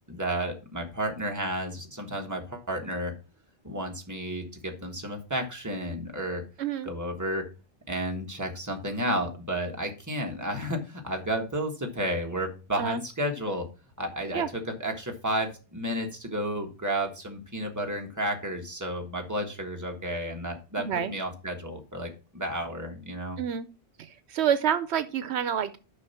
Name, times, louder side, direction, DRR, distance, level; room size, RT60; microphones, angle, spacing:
voice 1, 0.1-3.1 3.6-6.4 6.8-7.4 7.9-13.6 14.0-14.4 14.8-23.4, right 1 dB, 15° right, 2 dB, 1.6 m, -32 dB
voice 2, 6.6-6.9 12.8-13.0 14.3-14.5 20.8-21.1 23.4-23.7 24.0-25.8, right 8 dB, 75° right, 13 dB, 0.9 m, -28 dB
6.5 x 5.8 x 5.6 m, 0.33 s
omnidirectional pair, 1.1 m